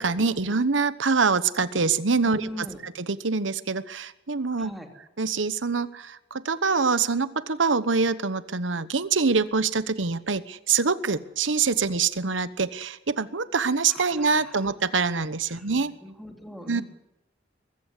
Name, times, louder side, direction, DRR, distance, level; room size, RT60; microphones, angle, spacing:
voice 1, 0.0-4.7 5.2-15.9 16.7-16.8, right 4 dB, 90° right, 14 dB, 1.1 m, -25 dB
voice 2, 2.2-2.8 4.5-4.9 13.9-14.7 15.5-16.8, left 1 dB, ahead, 3 dB, 2.8 m, -41 dB
22.5 x 15.0 x 9.6 m, 0.89 s
head